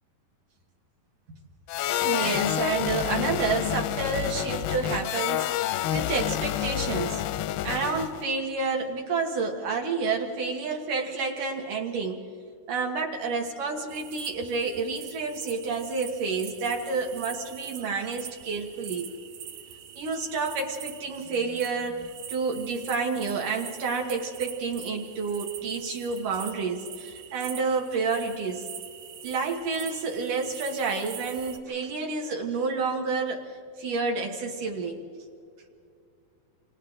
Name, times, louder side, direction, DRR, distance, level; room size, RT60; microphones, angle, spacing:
sound 1, 1.7-8.2, left 13 dB, 90° left, 2.6 m, -28 dB
voice 1, 2.0-7.2 7.6-12.2 12.7-19.1 20.0-28.6 29.2-33.5 33.8-35.0, right 4 dB, 65° right, 1 dB, 2.8 m, -29 dB
sound 2, 13.9-31.6, right 9 dB, 85° right, 3.1 m, -43 dB
28.5 x 26.0 x 3.8 m, 2.3 s
omnidirectional pair, 4.4 m